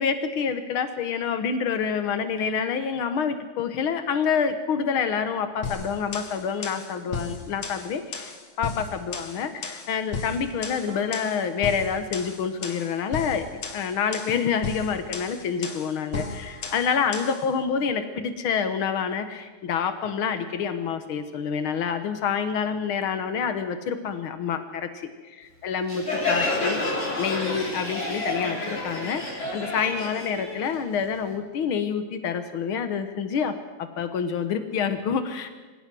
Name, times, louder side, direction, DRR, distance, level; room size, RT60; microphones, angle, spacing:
voice 1, 0.0-8.3 8.6-33.5 33.8-35.5, left 6 dB, 85° left, 9 dB, 1.1 m, -27 dB
sound 1, 5.6-17.5, left 5 dB, 55° left, 2.9 m, -35 dB
sound 2, 10.9-13.3 15.6-15.7 16.1-18.9 19.1-19.9 20.2-20.4 20.7-20.8 21.5-21.8, equal, 60° right, 5.1 m, -47 dB
Crowd, 25.9-31.3, left 2 dB, 20° left, 4.2 m, -29 dB
25.5 x 17.0 x 6.2 m, 1.3 s
omnidirectional pair, 4.2 m